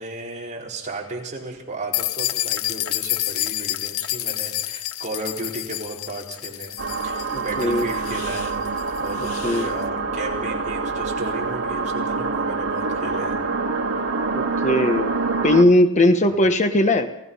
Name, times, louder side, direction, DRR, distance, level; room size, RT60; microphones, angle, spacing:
voice 1, 0.0-8.6 9.0-13.4 16.2-16.3, right 2 dB, 35° right, -2 dB, 4.6 m, -34 dB
sound 1, 1.9-9.7, left 14 dB, 65° left, 0.7 m, -29 dB
sound 2, 6.8-15.6, right 4 dB, 80° right, 2.0 m, -26 dB
voice 2, 7.3-7.9 9.2-9.7 14.3-15.1 15.4-17.1, left 1 dB, 35° left, 7 dB, 1.2 m, -19 dB
28.5 x 17.5 x 5.6 m, 0.87 s
head